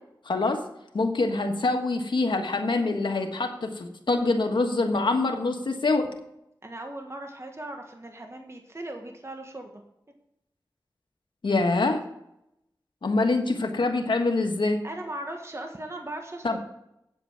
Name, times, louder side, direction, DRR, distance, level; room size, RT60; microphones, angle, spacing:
voice 1, 0.2-0.6 0.9-6.1 11.4-12.0 13.0-14.8 16.4-16.6, left 3 dB, 85° left, 4 dB, 1.4 m, -25 dB
voice 2, 6.6-9.8 14.8-16.6, right 1 dB, 35° right, 3 dB, 1.5 m, -38 dB
8.7 x 8.0 x 5.8 m, 0.81 s
cardioid pair, 45°, 8 cm